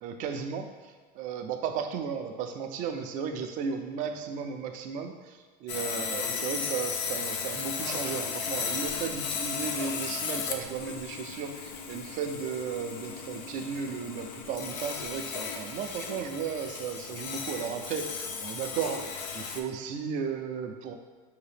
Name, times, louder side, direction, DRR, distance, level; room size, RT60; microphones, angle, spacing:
voice 1, 0.0-20.9, right 6 dB, 40° right, 6 dB, 0.4 m, -35 dB
Sawing, 5.7-19.6, left 6 dB, 85° left, 0.5 m, -35 dB
4.7 x 2.8 x 3.3 m, 1.5 s
supercardioid pair, 135°, 21 cm